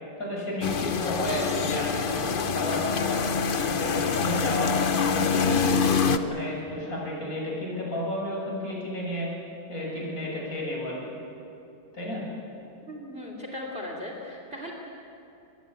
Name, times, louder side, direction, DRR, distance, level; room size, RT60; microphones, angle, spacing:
voice 1, 0.2-2.2 2.5-5.8 6.2-9.3 9.7-11.2 11.9-12.2, left 1 dB, 45° left, -3 dB, 7.4 m, -32 dB
sound 1, 0.6-6.2, left 6 dB, 75° left, 0.4 m, -25 dB
voice 2, 12.9-14.7, left 1 dB, 30° right, 0 dB, 3.2 m, -37 dB
25.0 x 21.5 x 8.4 m, 2.7 s
omnidirectional pair, 2.2 m